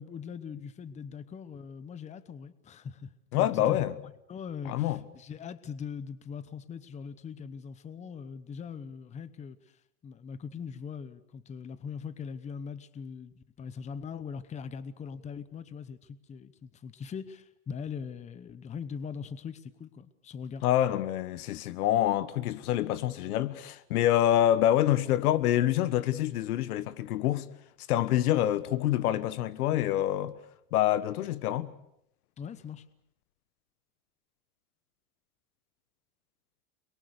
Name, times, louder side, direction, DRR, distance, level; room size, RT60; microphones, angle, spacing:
voice 1, 0.0-3.8 4.3-9.6 10.0-20.7 32.4-32.9, left 6 dB, 15° left, 0.9 m, -41 dB
voice 2, 3.3-3.9 4.6-5.0 20.6-27.5 27.9-30.3 30.7-31.7, left 12 dB, 90° left, 1.5 m, -26 dB
30.0 x 23.0 x 6.8 m
supercardioid pair, 150°, 43 cm